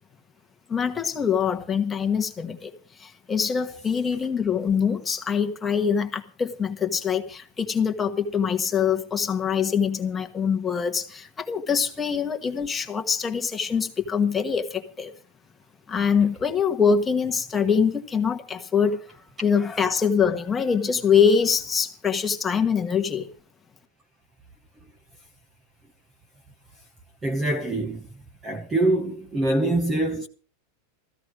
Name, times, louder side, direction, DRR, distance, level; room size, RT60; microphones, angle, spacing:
voice 1, 0.7-2.7 3.0-15.1 15.9-19.0 19.4-23.3, left 6 dB, 10° left, 1.3 m, -24 dB
voice 2, 27.2-28.1 28.4-30.3, right 2 dB, 10° right, 0.9 m, -24 dB
16.0 x 14.5 x 4.9 m
supercardioid pair, 180°, 0 cm